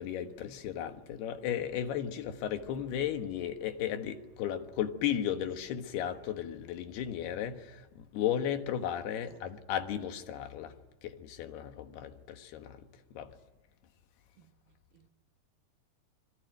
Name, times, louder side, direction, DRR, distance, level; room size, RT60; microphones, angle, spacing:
voice 1, 0.0-10.8 11.0-13.4, left 10 dB, 80° left, 3.5 m, -35 dB
voice 2, 14.4-15.1, right 9 dB, 65° right, 3.3 m, -62 dB
26.5 x 23.5 x 9.3 m
omnidirectional pair, 4.5 m